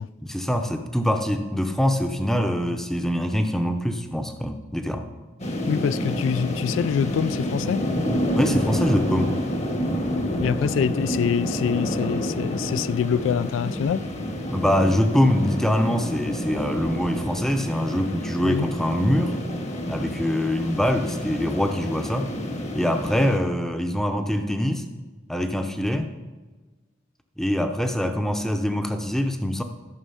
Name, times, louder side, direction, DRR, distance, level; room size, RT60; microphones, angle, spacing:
voice 1, 0.2-5.1 8.3-9.4 14.5-19.4 19.9-22.3 22.7-24.9 25.3-26.1 27.4-29.6, equal, ahead, 0.6 m, -24 dB
sound 1, 5.4-23.4, equal, 35° left, 1.0 m, -28 dB
voice 2, 5.7-7.9 10.4-14.1 18.4-18.7, left 7 dB, 85° left, 0.3 m, -25 dB
13.0 x 6.0 x 5.6 m
head